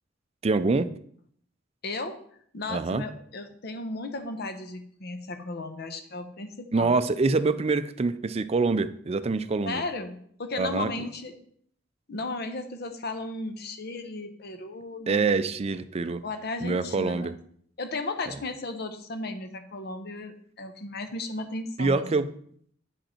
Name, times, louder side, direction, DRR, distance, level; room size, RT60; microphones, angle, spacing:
voice 1, 0.4-0.9 2.7-3.1 6.7-9.8 10.6-10.9 15.1-16.2 16.6-17.3 21.8-22.3, right 3 dB, 35° right, 12 dB, 0.4 m, -25 dB
voice 2, 1.8-2.2 2.5-7.0 9.6-11.3 12.1-15.3 16.2-17.3 17.8-22.3, left 2 dB, 60° left, 8 dB, 0.9 m, -35 dB
8.8 x 5.2 x 4.3 m, 0.63 s
head